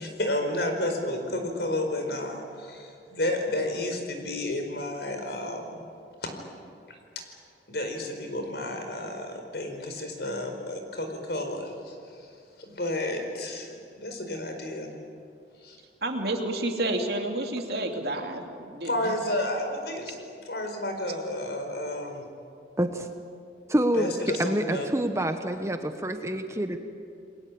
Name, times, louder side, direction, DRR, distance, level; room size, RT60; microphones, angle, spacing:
voice 1, 0.0-5.8 6.2-6.3 7.1-7.2 7.7-12.3 12.6-15.0 15.6-15.8 18.8-22.2 24.0-24.8, left 1 dB, 70° left, 4 dB, 4.8 m, -31 dB
voice 2, 16.0-19.1, right 1 dB, 65° right, 3 dB, 2.9 m, -30 dB
voice 3, 22.8-23.1 23.7-26.8, right 1 dB, 15° right, 7 dB, 1.1 m, -27 dB
29.0 x 21.5 x 8.7 m, 2.4 s
head